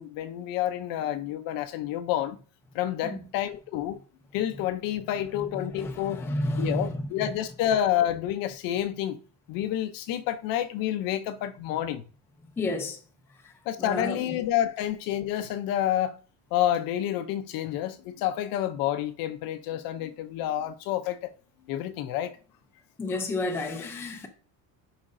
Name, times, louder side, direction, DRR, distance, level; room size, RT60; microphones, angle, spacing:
voice 1, 0.0-2.4 2.7-4.0 4.3-6.2 6.6-9.2 9.5-12.0 13.7-16.2 16.5-21.3 21.7-22.3, left 11 dB, 55° left, 0.6 m, -29 dB
voice 2, 5.6-7.3 12.6-13.0 13.4-13.5 13.8-14.4 23.0-24.3, left 2 dB, 5° left, 0.5 m, -31 dB
9.8 x 5.1 x 2.6 m
cardioid pair, 180°, 41 cm